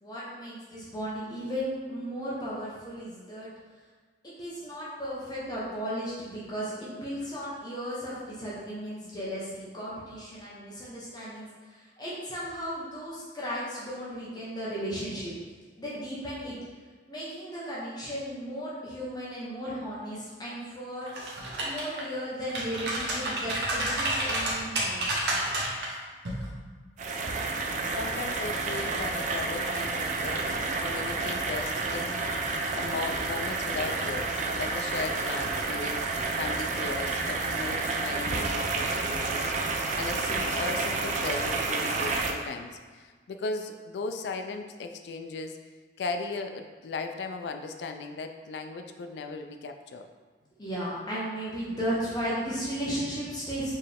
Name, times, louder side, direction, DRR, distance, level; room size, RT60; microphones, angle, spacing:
voice 1, 0.0-3.5 4.2-15.3 15.8-16.5 17.1-21.1 21.6-25.2 50.6-53.7, equal, 25° left, -8 dB, 0.9 m, -35 dB
sound 1, 21.1-22.0 22.4-25.9 26.3-26.5, right 1 dB, 75° right, 1.0 m, -30 dB
sound 2, 27.0-42.3, right 3 dB, 45° right, 0.4 m, -30 dB
voice 2, 27.8-32.2 32.8-36.0 36.4-45.6 46.0-50.1, left 3 dB, 70° left, 6 dB, 0.4 m, -37 dB
4.5 x 3.1 x 3.4 m, 1.4 s
head